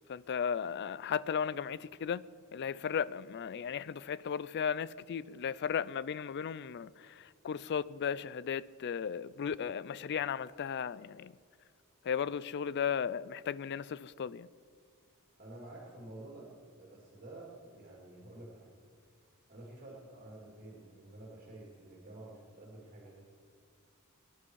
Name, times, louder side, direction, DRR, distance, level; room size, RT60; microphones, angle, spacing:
voice 1, 0.1-2.2 2.5-11.3 12.0-14.5, left 7 dB, 50° left, 0.4 m, -35 dB
voice 2, 15.4-16.5 16.8-18.7 19.0-19.2 19.5-23.2, right 2 dB, 45° right, 2.7 m, -50 dB
22.5 x 10.5 x 4.7 m
head